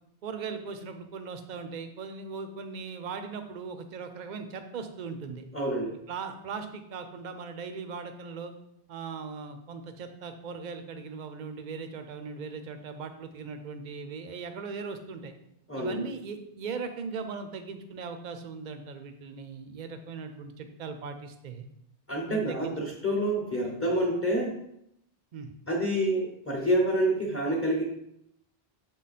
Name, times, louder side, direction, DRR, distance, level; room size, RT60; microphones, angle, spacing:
voice 1, 0.2-5.4 6.1-8.5 8.9-15.3 15.8-21.7 22.3-22.8 25.3-25.5, right 5 dB, 50° right, 8 dB, 0.7 m, -39 dB
voice 2, 5.5-5.9 15.7-16.0 22.1-24.5 25.7-27.8, right 1 dB, 15° left, -4 dB, 0.9 m, -27 dB
6.5 x 3.8 x 4.2 m, 0.79 s
omnidirectional pair, 1.0 m